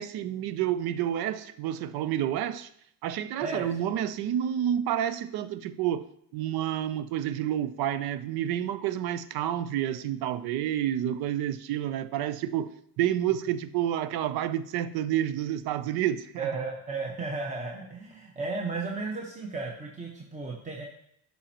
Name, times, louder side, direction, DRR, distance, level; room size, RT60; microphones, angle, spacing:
voice 1, 0.0-2.7 3.0-6.1 6.3-12.7 13.0-16.5, right 11 dB, 60° right, 0.6 m, -29 dB
voice 2, 16.4-20.8, right 3 dB, 15° right, 1.2 m, -34 dB
9.7 x 5.5 x 3.0 m
supercardioid pair, 85°, 42 cm